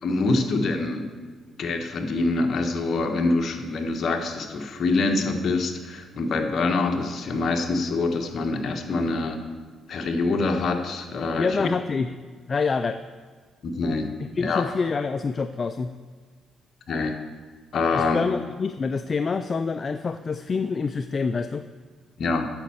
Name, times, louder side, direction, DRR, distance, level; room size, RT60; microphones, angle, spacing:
voice 1, 0.0-1.1 1.6-9.4 9.9-11.7 13.6-14.1 14.4-14.7 16.9-17.1 17.7-18.2 22.2-22.5, left 3 dB, 55° left, 4 dB, 1.2 m, -25 dB
voice 2, 11.4-12.1 12.5-13.0 14.3-15.9 17.9-21.7, left 4 dB, 40° left, 10 dB, 0.4 m, -26 dB
8.9 x 6.3 x 7.1 m, 1.5 s
cardioid pair, 90°, 0 cm